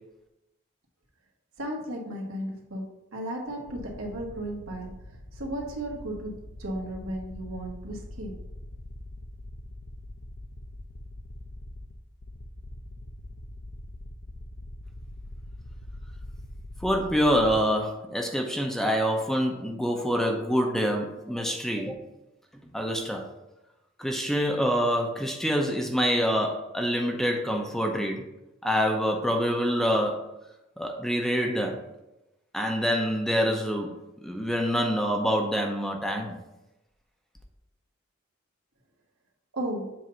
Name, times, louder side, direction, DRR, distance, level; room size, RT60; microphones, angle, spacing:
voice 1, 1.6-2.8 3.1-4.9 5.3-6.3 6.6-8.3 39.5-39.9, right 1 dB, 85° right, 0 dB, 1.5 m, -34 dB
sound 1, 3.7-17.6, left 1 dB, 55° left, 0.7 m, -43 dB
voice 2, 16.8-22.0 22.7-23.3 24.0-28.3 28.6-30.2 30.8-31.8 32.5-36.4, equal, ahead, 1 dB, 0.6 m, -26 dB
7.6 x 2.7 x 5.5 m, 0.92 s
head